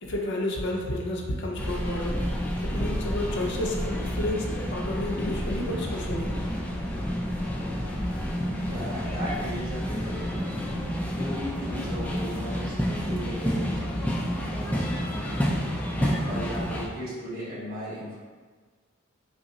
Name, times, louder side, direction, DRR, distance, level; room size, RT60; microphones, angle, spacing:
voice 1, 0.0-6.3, left 1 dB, 60° left, 0 dB, 0.5 m, -31 dB
sound 1, 1.6-16.9, equal, 5° left, 0.3 m, -29 dB
voice 2, 8.7-10.6 11.1-15.7 16.3-18.2, equal, 50° right, -9 dB, 1.5 m, -37 dB
5.2 x 2.0 x 2.7 m, 1.5 s
head